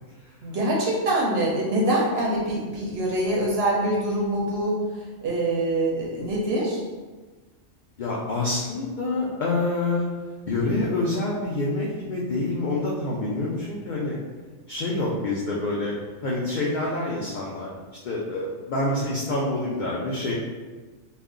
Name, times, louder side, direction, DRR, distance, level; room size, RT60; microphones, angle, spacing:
voice 1, 0.4-4.8 5.2-6.8, right 1 dB, 60° right, -3 dB, 0.7 m, -24 dB
voice 2, 8.0-10.1 10.5-14.2 14.7-15.9 16.2-17.7 18.0-20.3, left 2 dB, 85° left, -5 dB, 0.4 m, -27 dB
2.4 x 2.1 x 3.6 m, 1.3 s
omnidirectional pair, 1.4 m